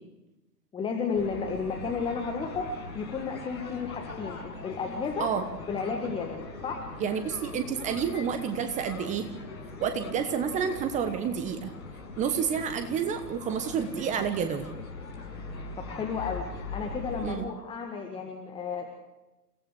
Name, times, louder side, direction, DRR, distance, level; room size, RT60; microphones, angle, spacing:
voice 1, 0.7-5.3 5.7-6.9 15.8-16.4 16.7-18.9, left 5 dB, 10° left, 2 dB, 1.7 m, -33 dB
sound 1, 1.1-17.4, left 3 dB, 60° left, 6.2 m, -41 dB
voice 2, 7.0-9.3 9.8-11.7 12.2-14.7 17.2-17.4, right 7 dB, 15° right, 9 dB, 1.1 m, -29 dB
29.5 x 17.5 x 6.6 m, 1.1 s
figure-of-eight pair, 115°, 49 cm